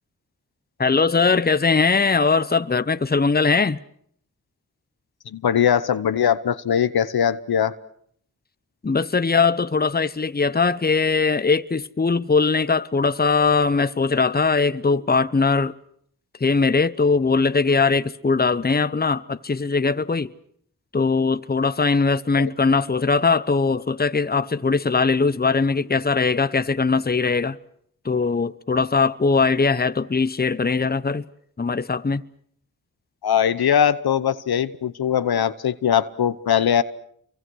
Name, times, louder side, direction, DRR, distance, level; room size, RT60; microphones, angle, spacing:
voice 1, 0.8-3.8 8.8-15.7 16.4-20.3 20.9-27.6 28.0-31.2 31.6-32.2, left 4 dB, 25° left, 0.9 m, -20 dB
voice 2, 5.3-7.7 22.4-22.5 33.2-36.8, left 8 dB, 80° left, 1.0 m, -21 dB
28.0 x 24.0 x 6.3 m
cardioid pair, 40°, 37 cm